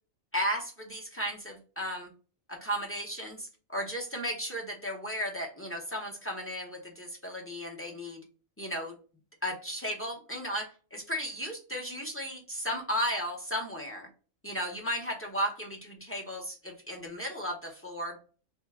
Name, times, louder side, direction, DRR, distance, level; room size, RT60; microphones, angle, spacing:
voice 1, 0.3-2.1 2.5-8.2 8.6-8.9 9.4-14.1 14.4-18.2, equal, 20° left, 0 dB, 0.4 m, -35 dB
3.4 x 2.8 x 3.5 m, 0.37 s
omnidirectional pair, 1.4 m